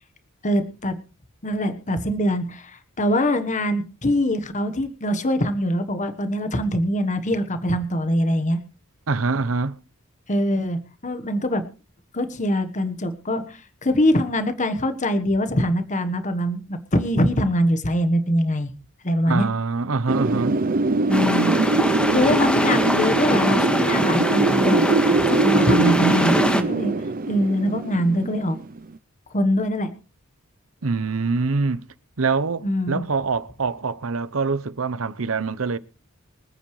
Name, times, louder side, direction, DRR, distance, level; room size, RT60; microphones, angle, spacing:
voice 1, 0.4-1.0 1.4-8.6 10.3-11.6 12.1-18.7 19.0-19.5 21.1-21.5 22.1-27.0 27.3-28.6 29.3-29.9 32.6-33.0, equal, 35° left, 1.3 m, -23 dB
voice 2, 9.1-9.8 19.3-20.6 30.8-31.8 32.2-35.8, right 4 dB, 70° right, 0.8 m, -24 dB
Wind, 20.1-28.8, right 3 dB, 40° right, 0.6 m, -22 dB
sound 1, 21.1-26.6, equal, 5° left, 1.7 m, -23 dB
25.0 x 9.1 x 3.2 m
head